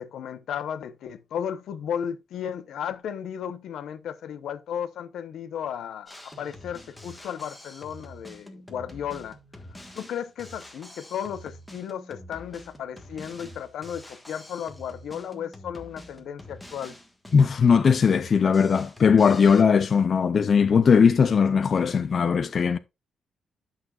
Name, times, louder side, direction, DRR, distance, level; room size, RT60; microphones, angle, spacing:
voice 1, 0.0-9.4 9.9-16.9, left 8 dB, 80° left, 0.8 m, -34 dB
Drum kit, 6.1-19.6, left 1 dB, 5° left, 1.5 m, -46 dB
voice 2, 17.3-22.8, left 6 dB, 45° left, 0.5 m, -19 dB
11.0 x 6.2 x 2.4 m
cardioid pair, 125°, 0 cm